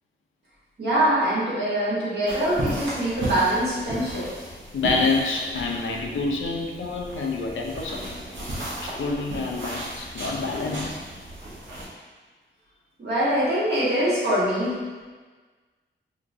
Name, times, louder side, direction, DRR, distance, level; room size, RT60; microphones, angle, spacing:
voice 1, 0.8-4.2 13.0-14.8, right 1 dB, 60° right, -9 dB, 1.3 m, -23 dB
sound 1, 2.3-11.9, right 1 dB, 75° right, 1.0 m, -35 dB
voice 2, 4.7-8.1 8.8-11.0, left 3 dB, 85° left, 1 dB, 0.5 m, -27 dB
3.4 x 2.9 x 2.6 m, 1.4 s
wide cardioid pair, 130°, 20 cm